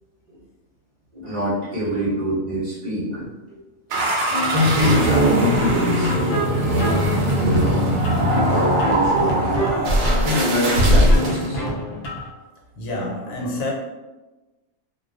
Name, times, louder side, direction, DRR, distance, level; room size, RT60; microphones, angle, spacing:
voice 1, 1.1-3.4 4.5-6.5 7.4-7.9 8.5-9.7 10.2-11.6, equal, 45° right, -9 dB, 0.6 m, -24 dB
sound 1, 3.9-11.5, right 1 dB, 70° right, 0.9 m, -20 dB
sound 2, 4.3-12.3, left 1 dB, 65° left, 0.6 m, -28 dB
voice 2, 12.8-13.7, left 1 dB, 90° left, -3 dB, 1.1 m, -30 dB
2.3 x 2.3 x 2.4 m, 1.2 s
omnidirectional pair, 1.4 m